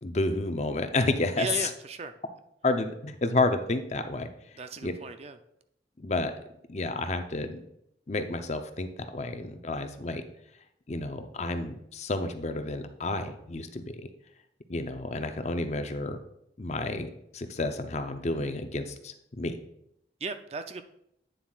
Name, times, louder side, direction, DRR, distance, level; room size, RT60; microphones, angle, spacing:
voice 1, 0.0-1.7 2.6-4.3 4.8-4.9 6.0-6.3 6.7-7.6 8.1-10.3 10.9-14.0 14.7-16.2 16.6-19.6, left 2 dB, 40° left, 8 dB, 0.6 m, -30 dB
voice 2, 1.4-2.1 4.6-5.4 20.2-20.8, right 4 dB, 35° right, 9 dB, 0.4 m, -36 dB
9.1 x 7.2 x 2.4 m, 0.76 s
head